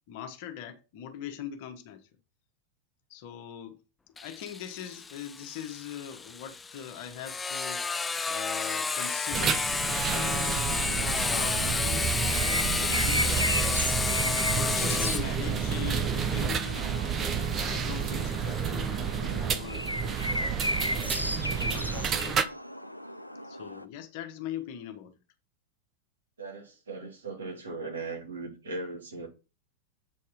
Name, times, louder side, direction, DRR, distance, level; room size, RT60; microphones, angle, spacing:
voice 1, 0.1-2.1 3.1-3.8 4.2-7.8 8.3-9.7 10.0-12.1 12.3-13.9 14.2-16.9 17.2-20.2 20.9-22.4 23.4-25.1, left 9 dB, 45° left, 1.3 m, -41 dB
Sawing, 4.2-19.6, left 4 dB, 15° left, 0.3 m, -32 dB
sound 1, 9.3-22.4, right 7 dB, 25° right, 0.7 m, -30 dB
sound 2, 10.1-23.9, equal, 90° left, 0.5 m, -36 dB
voice 2, 26.4-29.3, right 3 dB, 70° right, 2.4 m, -38 dB
7.9 x 4.2 x 5.0 m
figure-of-eight pair, 90°, 0 cm